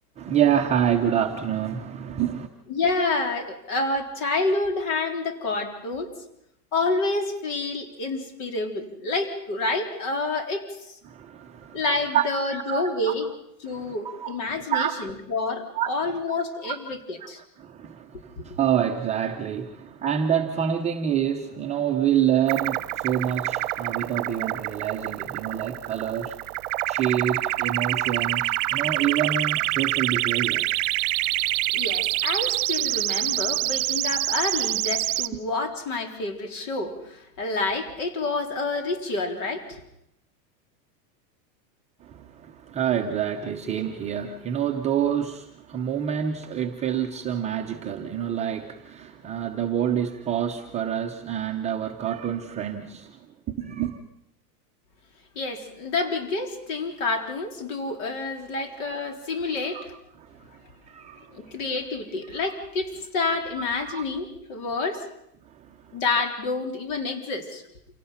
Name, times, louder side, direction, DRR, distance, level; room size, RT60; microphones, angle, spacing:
voice 1, 0.2-2.5 11.1-11.8 12.1-12.3 12.6-13.1 13.6-15.2 15.7-15.9 16.6-16.8 17.2-26.4 26.9-30.7 42.0-53.2 53.5-54.0 58.5-58.7 59.6-59.8 60.2-61.6 62.3-62.4 63.9-64.0 65.4-66.0, right 9 dB, 15° right, 0 dB, 0.7 m, -27 dB
voice 2, 2.7-6.1 6.7-11.0 11.7-13.2 13.6-17.4 18.4-18.5 31.7-39.8 55.4-59.9 61.3-65.1 65.9-67.6, left 3 dB, 55° left, 5 dB, 3.9 m, -28 dB
sound 1, 22.5-35.3, right 17 dB, 50° right, 1.0 m, -26 dB
28.0 x 17.5 x 5.8 m, 0.79 s
supercardioid pair, 160°, 48 cm